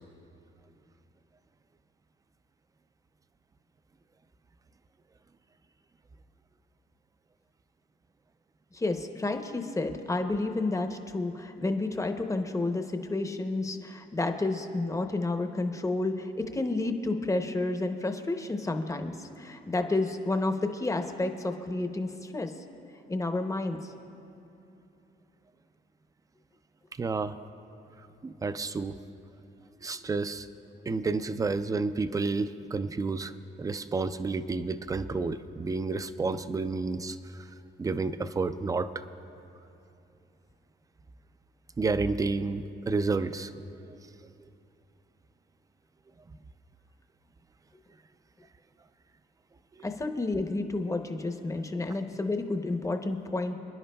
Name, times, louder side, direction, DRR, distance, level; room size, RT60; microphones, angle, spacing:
voice 1, 8.7-22.5 23.1-23.9 49.8-53.5, left 2 dB, 15° left, 6 dB, 0.7 m, -30 dB
voice 2, 27.0-27.4 28.2-29.0 29.8-30.5 30.9-33.3 33.6-37.2 37.8-39.0 41.8-43.5, right 3 dB, 15° right, 12 dB, 0.3 m, -30 dB
29.0 x 10.5 x 2.2 m, 2.8 s
cardioid pair, 135°, 20 cm